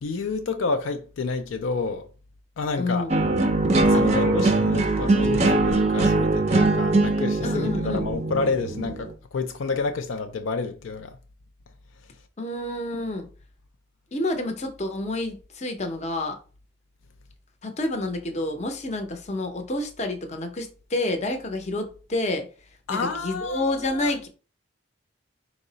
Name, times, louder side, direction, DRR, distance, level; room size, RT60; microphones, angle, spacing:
voice 1, 0.0-2.1 2.6-3.1 3.9-11.2 22.9-24.1, left 4 dB, 75° left, 0.4 m, -29 dB
voice 2, 2.8-3.1 3.9-4.2 7.4-8.1 12.4-13.3 14.1-16.4 17.6-22.5 22.9-24.3, left 2 dB, 35° left, 0.6 m, -29 dB
sound 1, 3.1-9.1, right 2 dB, 30° right, 0.4 m, -21 dB
4.6 x 2.0 x 3.8 m
head